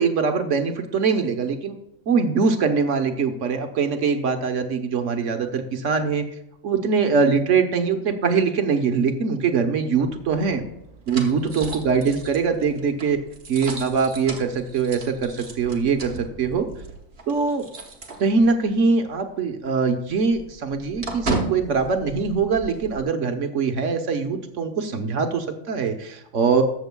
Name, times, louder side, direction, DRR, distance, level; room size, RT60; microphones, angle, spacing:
voice 1, 0.0-1.8 2.1-6.2 6.6-10.6 11.1-13.2 13.5-16.7 17.3-17.7 18.2-26.6, right 5 dB, 65° right, 6 dB, 1.3 m, -22 dB
sound 1, 9.9-18.8 19.1-19.2 19.6-23.0, right 3 dB, 50° right, 1.4 m, -35 dB
19.0 x 7.2 x 2.2 m, 0.82 s
omnidirectional pair, 1.4 m